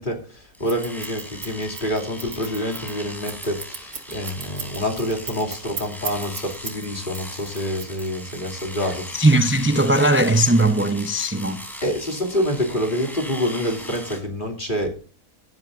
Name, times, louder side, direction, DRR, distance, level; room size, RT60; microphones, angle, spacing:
voice 1, 0.0-9.2 11.8-14.9, equal, 35° left, 2.9 m, -27 dB
Domestic sounds home sounds, 0.5-14.2, equal, ahead, 3.6 m, -39 dB
Scissors, 0.7-6.8 7.1-8.4, right 5 dB, 90° right, 2.4 m, -35 dB
voice 2, 9.1-11.6, right 1 dB, 15° right, 0.5 m, -18 dB
17.0 x 11.0 x 2.5 m
omnidirectional pair, 1.5 m